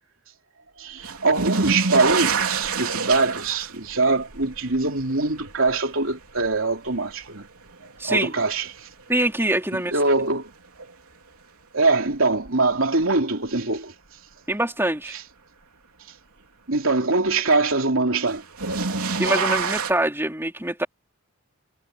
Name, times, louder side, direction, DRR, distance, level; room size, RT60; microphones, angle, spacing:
voice 1, 0.8-7.5 8.0-8.9 9.9-10.5 11.7-13.9 15.1-15.2 16.7-18.4, right 3 dB, 60° right, 3.5 m, -23 dB
sound 1, 1.0-8.1 8.5-9.2 10.8-10.9 12.4-12.5 18.3-19.9, right 4 dB, 80° right, 3.2 m, -27 dB
voice 2, 8.0-8.3 9.1-9.9 14.5-15.1 19.2-20.9, right 1 dB, 10° right, 3.5 m, -24 dB
head